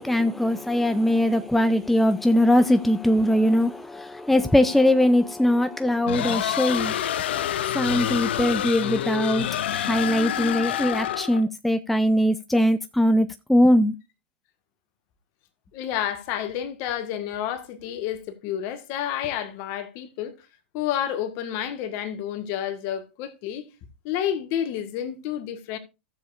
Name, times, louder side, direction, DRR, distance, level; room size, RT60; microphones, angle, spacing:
voice 1, 0.0-6.9 7.7-9.5 9.7-13.9, left 1 dB, ahead, 0.5 m, -21 dB
sound 1, 6.1-11.4, left 11 dB, 70° left, 0.6 m, -27 dB
voice 2, 15.7-20.3 20.7-23.7 24.0-25.8, left 10 dB, 50° left, 1.6 m, -30 dB
14.5 x 7.1 x 2.5 m
hypercardioid pair, 100°, 6 cm